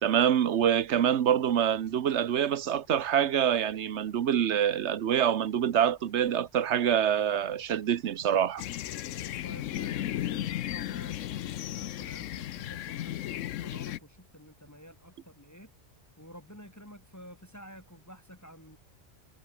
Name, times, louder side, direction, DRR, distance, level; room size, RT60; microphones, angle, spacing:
voice 1, 0.0-8.6, right 9 dB, 70° right, 1.1 m, -26 dB
sound 1, 8.6-14.0, left 12 dB, 90° left, 1.0 m, -35 dB
voice 2, 9.4-15.7 16.2-18.8, equal, 15° left, 4.6 m, -51 dB
omnidirectional pair, 1.2 m